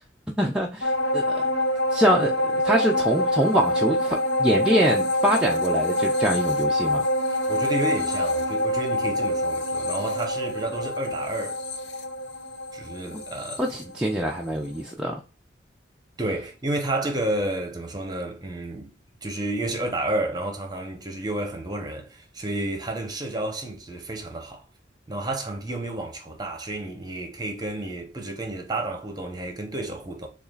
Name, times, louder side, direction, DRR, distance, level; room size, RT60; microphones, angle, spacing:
voice 1, 0.4-1.4 1.9-7.1 13.6-15.2, right 1 dB, 5° right, 0.4 m, -24 dB
sound 1, 0.8-14.5 14.9-15.0, left 1 dB, 65° left, 0.7 m, -26 dB
voice 2, 7.3-11.6 12.7-13.9 16.2-18.9 19.2-24.6 25.1-30.3, right 2 dB, 20° right, 0.9 m, -31 dB
6.7 x 2.5 x 2.4 m
head